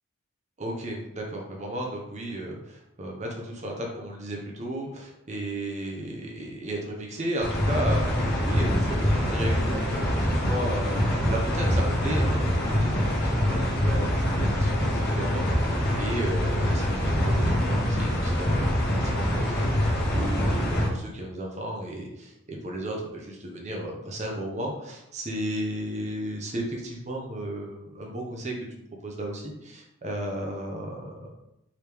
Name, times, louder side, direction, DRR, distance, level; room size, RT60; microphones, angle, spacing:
voice 1, 0.6-28.5 29.0-31.3, right 1 dB, 35° right, -1 dB, 0.7 m, -34 dB
sound 1, 7.4-20.9, equal, 50° left, 1.1 m, -25 dB
4.8 x 3.1 x 3.4 m, 0.83 s
head